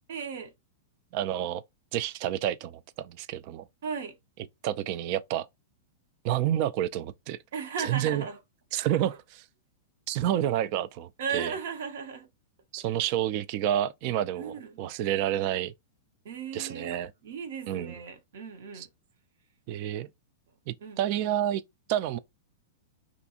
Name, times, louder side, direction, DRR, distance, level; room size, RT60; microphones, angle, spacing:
voice 1, 0.1-0.5 3.8-4.2 7.5-8.4 11.2-12.3 14.3-14.8 16.2-18.9 20.8-21.0, right 6 dB, 65° right, 0.8 m, -36 dB
voice 2, 1.1-1.6 1.9-3.7 4.6-5.5 6.2-7.4 7.8-8.3 8.7-9.4 10.1-11.5 12.7-15.7 16.5-17.1 17.7-17.9 18.8-18.9 19.7-20.1 20.7-21.6 21.9-22.2, right 11 dB, 50° right, 0.3 m, -29 dB
2.5 x 2.2 x 2.8 m
hypercardioid pair, 100°, 0 cm